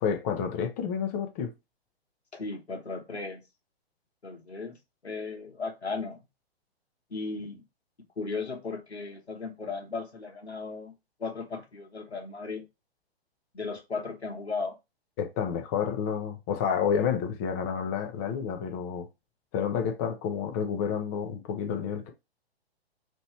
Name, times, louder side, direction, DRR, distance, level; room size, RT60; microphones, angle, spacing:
voice 1, 0.0-1.5 15.2-19.1 19.5-22.1, left 7 dB, 15° left, 0.4 m, -29 dB
voice 2, 2.3-3.4 4.2-4.8 5.0-6.2 7.1-7.6 8.2-10.9 11.2-12.6 13.5-14.8, left 4 dB, 85° left, 1.1 m, -36 dB
3.1 x 2.8 x 4.2 m
figure-of-eight pair, 120°, 32 cm